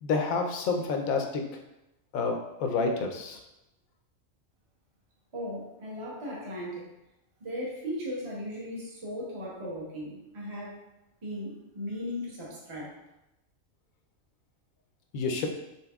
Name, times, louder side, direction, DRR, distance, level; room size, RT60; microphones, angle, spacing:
voice 1, 0.0-1.4 2.1-3.4 15.1-15.5, left 4 dB, 85° left, 3 dB, 1.0 m, -29 dB
voice 2, 5.3-6.9 7.4-10.8 11.2-12.9, equal, 25° right, -5 dB, 0.8 m, -37 dB
4.1 x 3.7 x 2.3 m, 0.91 s
omnidirectional pair, 1.4 m